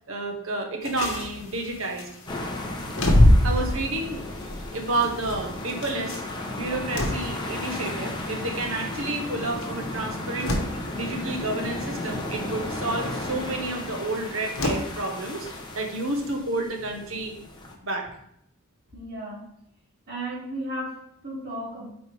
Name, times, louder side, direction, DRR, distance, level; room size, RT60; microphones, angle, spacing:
voice 1, 0.1-2.1 3.4-4.2 4.7-6.2 6.5-10.6 10.9-15.5 15.7-17.4 17.8-18.1, right 2 dB, 70° right, 3 dB, 1.1 m, -30 dB
sound 1, 0.8-16.3, left 1 dB, 70° left, 1.3 m, -28 dB
sound 2, 2.3-17.7, left 1 dB, 20° left, 0.8 m, -34 dB
voice 2, 18.9-19.5 20.1-21.9, right 1 dB, 45° right, -4 dB, 2.3 m, -34 dB
8.8 x 4.1 x 3.4 m, 0.74 s
head